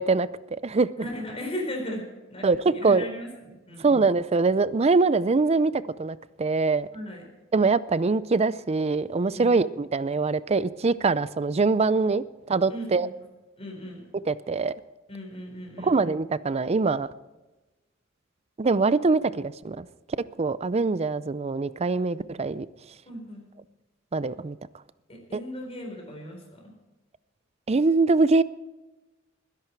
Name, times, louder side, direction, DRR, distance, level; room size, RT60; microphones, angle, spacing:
voice 1, 0.0-0.9 2.4-3.1 3.8-5.7 6.0-6.9 7.5-13.1 14.3-14.7 15.8-17.1 18.6-19.9 20.4-22.7 24.1-24.6 25.3-25.4 27.7-28.4, right 3 dB, 30° right, 0.5 m, -23 dB
voice 2, 1.0-3.9 6.9-7.3 9.4-9.5 12.7-13.1 13.6-14.0 15.1-16.0 23.1-23.4 25.1-26.7, equal, 30° left, 4.4 m, -37 dB
21.0 x 10.5 x 4.6 m
head